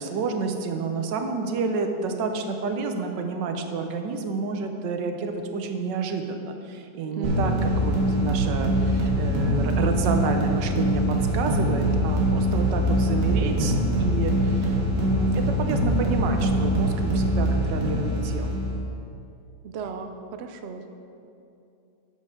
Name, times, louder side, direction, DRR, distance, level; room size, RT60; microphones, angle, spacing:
voice 1, 0.0-18.6, right 4 dB, 90° right, 5 dB, 1.4 m, -30 dB
voice 2, 7.1-7.7 19.6-20.9, right 5 dB, 75° right, 6 dB, 0.6 m, -35 dB
sound 1, 7.2-18.7, equal, 50° right, 1.8 m, -23 dB
10.5 x 7.4 x 3.7 m, 2.7 s
omnidirectional pair, 1.8 m